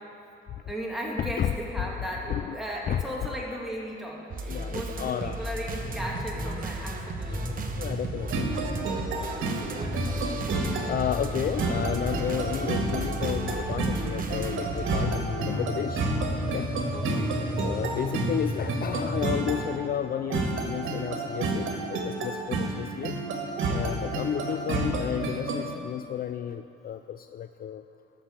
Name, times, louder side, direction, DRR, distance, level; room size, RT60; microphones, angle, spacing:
voice 1, 0.7-7.6 9.1-10.5 16.9-17.5 22.6-23.0 23.8-24.1, equal, ahead, -4 dB, 2.4 m, -37 dB
sound 1, 4.3-15.1, right 2 dB, 45° right, 1.0 m, -35 dB
voice 2, 4.5-5.4 7.8-8.5 10.6-16.1 16.5-16.7 17.6-23.2 23.7-27.8, left 9 dB, 50° left, 9 dB, 0.4 m, -32 dB
sound 2, 5.7-19.4, equal, 25° left, 3.1 m, -35 dB
sound 3, 8.3-25.7, right 2 dB, 80° right, 1.7 m, -31 dB
13.0 x 5.9 x 7.2 m, 2.5 s
cardioid pair, 90°, 20 cm